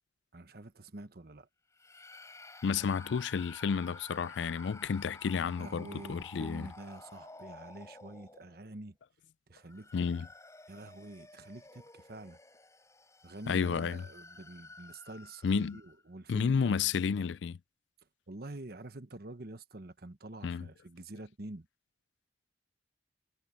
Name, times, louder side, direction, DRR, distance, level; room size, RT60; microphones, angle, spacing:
voice 1, 0.3-1.5 5.6-9.0 9.5-10.1 10.7-12.4 13.2-16.8 18.3-21.7, right 2 dB, 55° right, 1.1 m, -47 dB
sound 1, 1.7-8.8 9.5-16.0, left 2 dB, 15° left, 5.5 m, -52 dB
voice 2, 2.6-6.7 9.9-10.3 13.5-14.0 15.4-15.8 16.3-17.6 20.4-20.7, left 6 dB, 75° left, 0.4 m, -31 dB
head